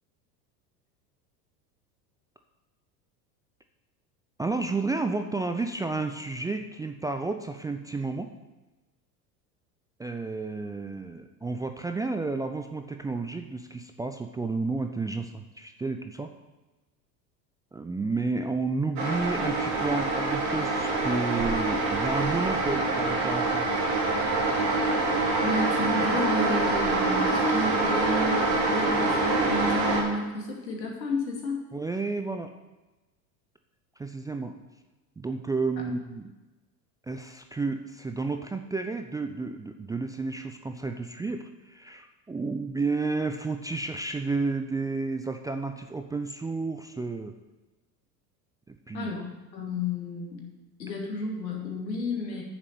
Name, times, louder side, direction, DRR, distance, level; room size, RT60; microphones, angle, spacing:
voice 1, 4.4-8.3 10.0-16.3 17.7-23.7 31.7-32.5 34.0-34.5 35.2-36.3 37.1-47.3 48.7-49.1, right 3 dB, 10° right, 6 dB, 0.4 m, -31 dB
sound 1, 19.0-30.0, right 2 dB, 75° right, 3.7 m, -25 dB
voice 2, 25.4-31.6 48.9-50.4 50.8-52.4, left 2 dB, 85° left, -1 dB, 2.7 m, -32 dB
9.4 x 7.2 x 6.9 m, 1.1 s
hypercardioid pair, 80°, 49 cm